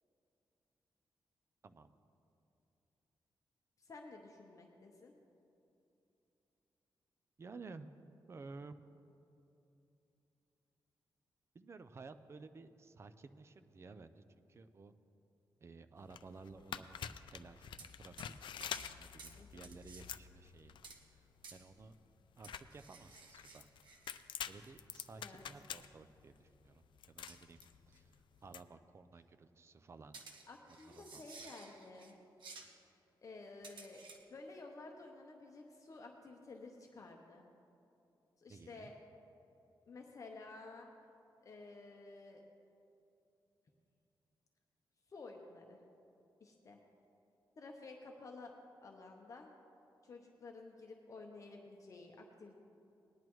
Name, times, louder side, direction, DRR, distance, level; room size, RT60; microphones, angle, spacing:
voice 1, 1.6-2.0 7.4-7.9 8.3-8.9 11.5-14.2 14.5-14.9 15.6-20.8 21.0-21.9 22.4-23.7 24.0-27.6 27.9-30.1 30.7-31.3 38.5-38.9, right 4 dB, 35° right, 11 dB, 0.4 m, -55 dB
voice 2, 3.8-5.1 19.4-19.7 25.2-25.4 30.5-32.2 33.2-34.0 34.3-37.5 38.4-38.9 39.9-40.9 41.4-42.4 45.1-45.8 46.4-46.8 47.6-48.5 48.8-49.5 50.0-52.6, left 3 dB, 40° left, 1 dB, 0.8 m, -53 dB
sound 1, 16.0-28.6, left 8 dB, 75° left, 0.4 m, -48 dB
sound 2, 17.8-17.9 18.2-18.3 18.6-18.9 19.2-19.4 19.6-20.0 20.8-21.0 21.4-21.6 22.4-24.7 25.0-25.1 27.3-27.7 27.9-28.0 30.1-32.1 32.4-32.7 33.6-34.2, right 4 dB, 80° right, 1.1 m, -55 dB
18.5 x 10.5 x 3.1 m, 2.8 s
wide cardioid pair, 155°, 8 cm